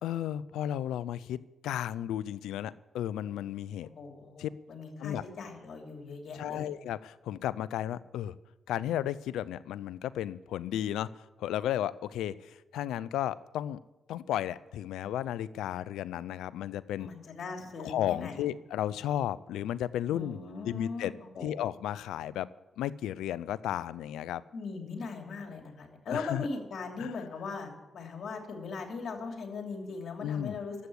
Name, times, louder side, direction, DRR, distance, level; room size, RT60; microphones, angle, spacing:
voice 1, 0.0-1.4 1.6-3.9 4.4-4.5 5.0-5.2 6.4-8.4 8.7-11.1 11.4-13.8 14.1-17.1 17.8-20.4 20.6-21.1 21.4-22.5 22.8-24.4 26.1-26.5 27.0-27.1 30.2-30.6, left 11 dB, 85° left, 19 dB, 0.4 m, -33 dB
voice 2, 3.8-6.7 17.0-18.5 20.1-21.5 24.5-30.8, left 4 dB, 65° left, 3 dB, 3.0 m, -39 dB
12.5 x 8.4 x 9.9 m, 1.0 s
supercardioid pair, 50°, 0 cm